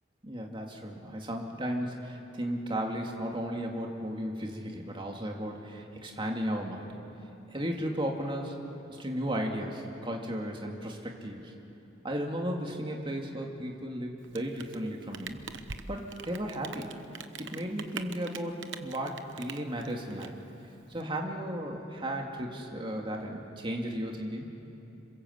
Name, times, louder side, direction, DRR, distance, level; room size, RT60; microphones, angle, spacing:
voice 1, 0.2-7.0 7.5-8.5 8.9-11.5 12.0-15.4 15.9-16.9 17.4-20.3 20.9-24.5, equal, 25° right, 1 dB, 2.3 m, -35 dB
Rain, 14.2-21.0, right 6 dB, 75° right, 1.0 m, -44 dB
26.5 x 22.5 x 8.0 m, 2.8 s
head